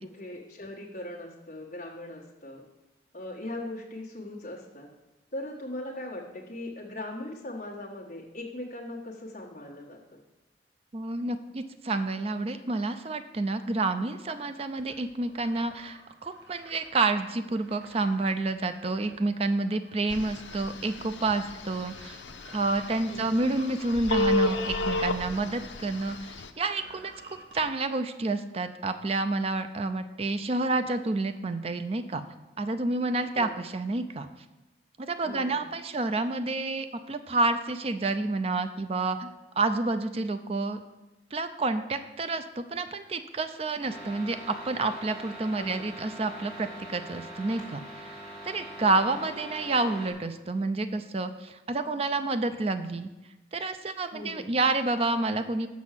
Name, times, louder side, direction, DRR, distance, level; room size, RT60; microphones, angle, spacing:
voice 1, 0.0-2.6 3.1-4.9 5.3-10.2 23.0-23.3 33.3-33.5 35.2-35.7 45.5-46.0 48.8-49.0 54.1-54.5, left 1 dB, 45° left, -4 dB, 1.4 m, -40 dB
voice 2, 10.9-22.2 22.5-27.1 27.5-32.2 32.6-34.3 35.0-39.3 39.6-40.8 41.3-53.1 53.5-55.7, right 3 dB, 35° right, 9 dB, 0.5 m, -29 dB
sound 1, 14.8-26.2 26.5-27.7, right 1 dB, 70° right, 1.2 m, -53 dB
Telephone, 20.1-26.5, left 2 dB, 85° left, 0.6 m, -32 dB
sound 2, 43.8-50.1, equal, 5° left, 2.8 m, -43 dB
6.2 x 6.2 x 7.4 m, 1.0 s
head